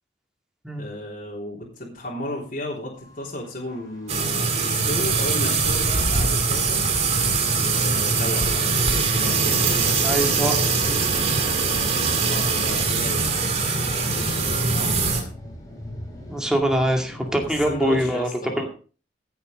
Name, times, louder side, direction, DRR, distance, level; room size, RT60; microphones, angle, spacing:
voice 1, 0.8-6.8 7.5-8.8 9.1-11.0 12.1-15.3 17.4-18.7, left 1 dB, 45° left, -4 dB, 3.4 m, -34 dB
sound 1, 2.9-18.1, equal, 20° left, 3.3 m, -41 dB
sound 2, 4.1-15.2, right 4 dB, 35° right, 2.4 m, -22 dB
voice 2, 10.0-10.6 16.3-18.3 18.6-18.7, equal, 5° right, 2 dB, 2.2 m, -23 dB
15.5 x 7.1 x 5.1 m, 0.38 s
head